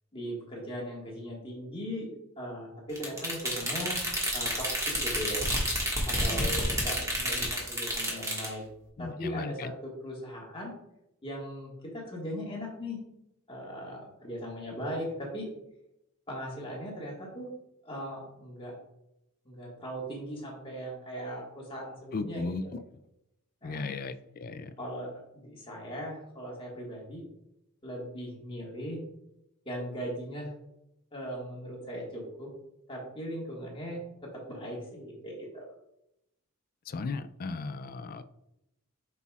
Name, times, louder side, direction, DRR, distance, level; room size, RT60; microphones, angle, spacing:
voice 1, 0.1-2.1 2.4-4.0 4.3-5.5 6.0-8.6 9.0-10.7 11.2-13.0 13.5-15.5 16.3-17.5 17.8-18.8 19.4-22.7 23.6-24.0 24.8-27.2 27.8-29.0 29.6-30.5 31.1-32.5 32.9-35.6, equal, 25° left, -3 dB, 1.7 m, -39 dB
sound 1, 2.9-8.5, equal, 15° right, 1.7 m, -30 dB
voice 2, 6.3-6.8 9.0-9.7 22.1-22.6 23.6-24.7 36.9-38.2, left 4 dB, 40° left, 12 dB, 0.4 m, -36 dB
8.1 x 5.6 x 2.4 m, 0.85 s
head